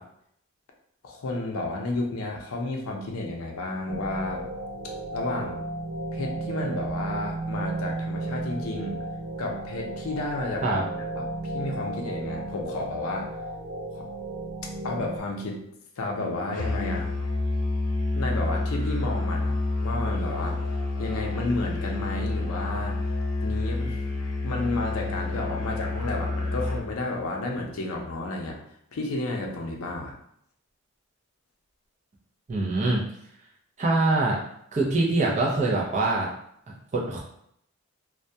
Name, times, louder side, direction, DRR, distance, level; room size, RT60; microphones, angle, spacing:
voice 1, 1.0-4.4 5.1-5.6 6.1-9.0 9.4-10.7 10.9-11.3 11.5-13.3 13.9-14.0 14.8-15.6 16.0-17.1 18.1-24.0 24.4-28.6 28.9-30.2, left 2 dB, 75° left, 1 dB, 0.5 m, -32 dB
sound 1, 3.9-15.2, right 2 dB, 85° right, 0.5 m, -34 dB
Musical instrument, 16.5-26.9, left 2 dB, 35° left, 0.8 m, -28 dB
voice 2, 32.5-33.0 33.8-34.4 34.7-36.3 36.7-37.2, right 2 dB, 30° right, -3 dB, 0.4 m, -24 dB
2.2 x 2.1 x 2.6 m, 0.72 s
head